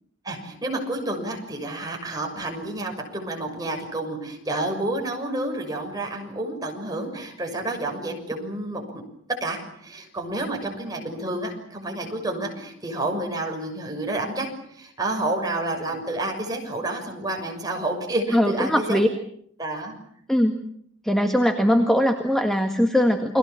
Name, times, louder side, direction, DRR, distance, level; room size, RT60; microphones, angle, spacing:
voice 1, 0.2-8.8 9.4-19.0 19.6-20.0, right 2 dB, 15° right, 2 dB, 6.5 m, -29 dB
voice 2, 18.3-19.1 20.3-20.6 21.0-23.4, equal, ahead, 4 dB, 1.8 m, -20 dB
30.0 x 23.0 x 7.2 m, 0.68 s
head